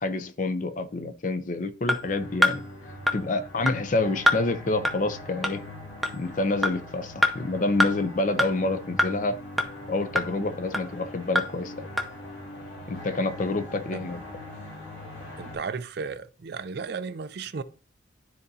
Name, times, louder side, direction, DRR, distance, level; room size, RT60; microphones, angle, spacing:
voice 1, 0.0-2.6 3.1-5.6 6.1-9.4 9.9-11.9 12.9-14.2, left 2 dB, 40° left, 0.5 m, -28 dB
sound 1, 1.9-2.0 2.4-2.5 3.1-3.2 3.7-3.8 4.3-4.4 4.8-4.9 5.4-5.5 6.0-6.1 6.6-6.7 7.2-7.3 7.8-7.9 8.4-8.5 9.0-9.1 9.6-9.7 10.1-10.3 10.7-10.8 11.3-11.4 12.0-12.1, equal, ahead, 0.6 m, -22 dB
sound 2, 2.0-15.6, left 1 dB, 65° left, 2.6 m, -41 dB
voice 2, 15.4-17.6, right 5 dB, 50° right, 0.4 m, -34 dB
12.0 x 4.0 x 2.7 m
head